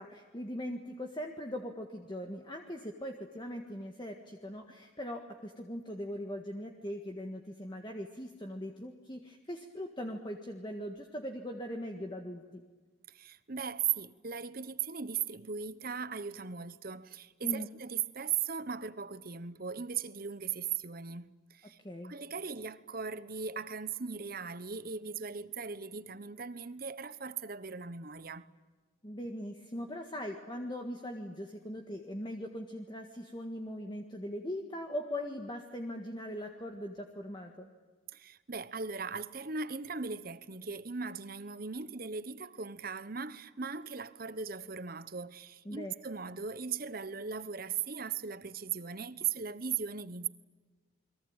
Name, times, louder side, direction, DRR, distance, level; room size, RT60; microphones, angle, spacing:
voice 1, 0.0-12.6 17.4-17.7 21.8-22.1 29.0-37.7 45.7-45.9, equal, 20° left, 1.7 m, -40 dB
voice 2, 13.1-21.8 22.0-28.5 38.1-50.3, right 6 dB, 45° right, 1.0 m, -38 dB
29.5 x 22.5 x 8.9 m
head